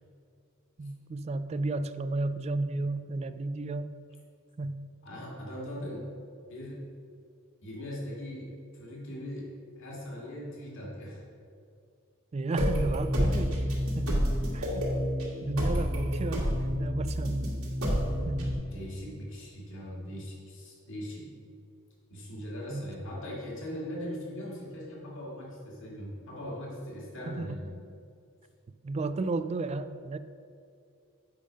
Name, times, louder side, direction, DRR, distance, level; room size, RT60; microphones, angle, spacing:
voice 1, 0.8-3.9 4.6-4.9 12.3-14.3 14.5-14.9 15.4-17.5 18.3-18.6 22.7-22.8 27.3-27.6 28.8-30.2, right 2 dB, 30° right, 12 dB, 0.3 m, -33 dB
voice 2, 5.0-6.1 6.5-6.8 7.6-9.5 9.8-11.2 13.2-13.3 18.5-21.3 22.1-27.7, equal, 65° left, -3 dB, 1.9 m, -40 dB
sound 1, 12.6-18.6, equal, 80° right, 1.8 m, -29 dB
7.7 x 5.0 x 5.0 m, 2.4 s
head